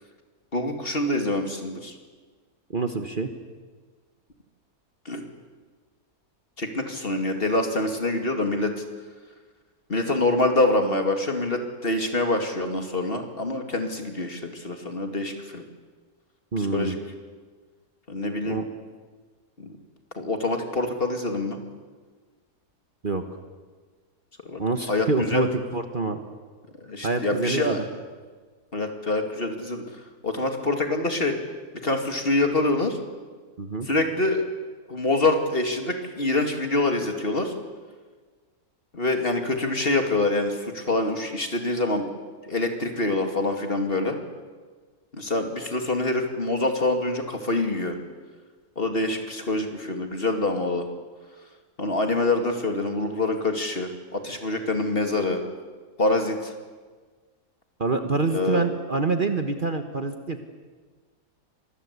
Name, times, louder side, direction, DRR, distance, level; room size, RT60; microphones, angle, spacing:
voice 1, 0.5-2.0 5.1-5.2 6.6-8.8 9.9-15.6 16.6-16.9 18.1-18.6 19.6-19.8 20.2-21.6 24.4-24.6 24.9-25.4 26.8-27.8 28.7-31.3 31.8-33.0 33.9-34.4 34.9-37.5 38.9-42.1 42.4-44.2 45.1-48.0 48.8-50.8 51.8-55.4 56.0-56.5 58.3-58.6, left 2 dB, 40° left, 5 dB, 2.6 m, -25 dB
voice 2, 2.7-3.3 16.5-17.0 18.4-18.6 23.0-23.2 24.6-26.2 27.0-27.8 33.6-33.9 57.8-60.4, right 3 dB, 35° right, 7 dB, 1.4 m, -26 dB
26.0 x 20.5 x 8.3 m, 1.5 s
omnidirectional pair, 1.6 m